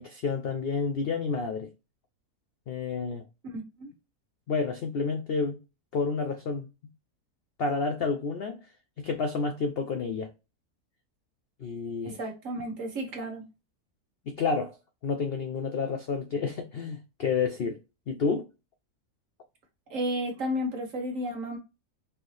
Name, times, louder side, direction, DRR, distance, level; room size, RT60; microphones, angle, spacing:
voice 1, 0.0-1.7 2.7-3.2 4.5-5.6 5.9-6.7 7.6-8.6 9.0-10.3 11.6-12.2 14.3-14.8 15.0-17.8 18.1-18.5, left 4 dB, 85° left, 0.5 m, -30 dB
voice 2, 3.5-3.9 12.0-13.4 19.9-21.6, equal, 55° right, 1.6 m, -32 dB
4.4 x 2.7 x 3.1 m
omnidirectional pair, 1.6 m